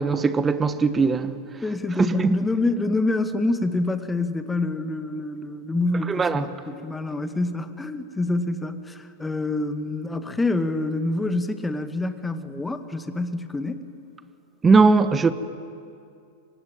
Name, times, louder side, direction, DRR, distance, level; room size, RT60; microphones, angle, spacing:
voice 1, 0.0-1.4 2.1-2.4 6.1-6.4 14.6-15.3, right 4 dB, 15° right, 1.4 m, -19 dB
voice 2, 1.6-13.9, left 2 dB, 10° left, 1.9 m, -26 dB
27.0 x 24.5 x 9.1 m
figure-of-eight pair, 90°, 0 cm